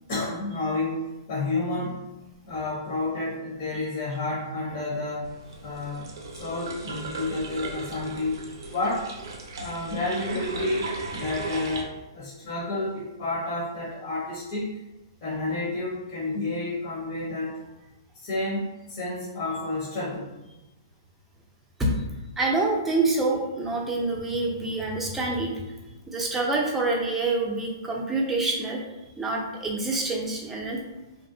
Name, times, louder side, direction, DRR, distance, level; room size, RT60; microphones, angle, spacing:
voice 1, 0.1-2.1 2.4-5.3 5.6-6.1 6.3-8.4 8.7-9.1 9.6-14.7 15.2-17.6 18.1-20.3, left 2 dB, 55° left, -6 dB, 0.8 m, -30 dB
sound 1, 5.2-11.8, right 3 dB, 70° right, 0.5 m, -36 dB
voice 2, 22.4-25.6 26.1-28.8 29.2-30.8, right 2 dB, 10° right, -2 dB, 0.5 m, -26 dB
2.5 x 2.0 x 2.6 m, 1.0 s
hypercardioid pair, 130°, 2 cm